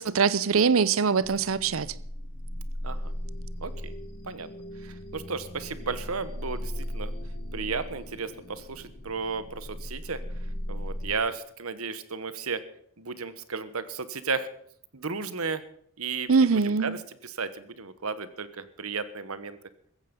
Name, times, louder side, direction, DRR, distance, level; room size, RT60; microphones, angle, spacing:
voice 1, 0.0-1.9 16.3-17.0, right 5 dB, 70° right, 0.7 m, -23 dB
sound 1, 1.2-11.1, equal, 50° left, 1.4 m, -37 dB
voice 2, 3.6-3.9 4.3-4.5 4.8-7.1 7.5-10.2 10.7-12.6 13.0-14.5 14.9-15.6 16.0-19.6, right 4 dB, 90° right, 1.3 m, -34 dB
15.0 x 14.5 x 5.4 m
head